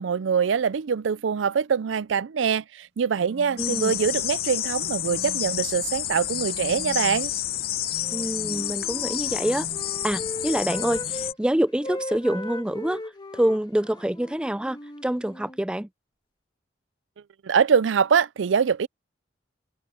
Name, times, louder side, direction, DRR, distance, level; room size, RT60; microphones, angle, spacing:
voice 1, 0.0-7.3 17.4-18.9, right 6 dB, 80° right, 0.5 m, -24 dB
sound 1, 3.2-4.3 4.8-5.8 6.3-7.4 7.9-8.9 9.3-10.0 10.6-11.4, right 2 dB, 65° right, 2.3 m, -44 dB
sound 2, 3.6-11.3, left 12 dB, 50° left, 0.8 m, -29 dB
voice 2, 3.6-4.0 8.1-9.7 10.0-13.0 13.3-15.9, right 1 dB, 5° right, 0.3 m, -26 dB
Wind instrument woodwind instrument, 8.0-11.4 11.7-15.6, left 1 dB, 25° left, 2.6 m, -38 dB
head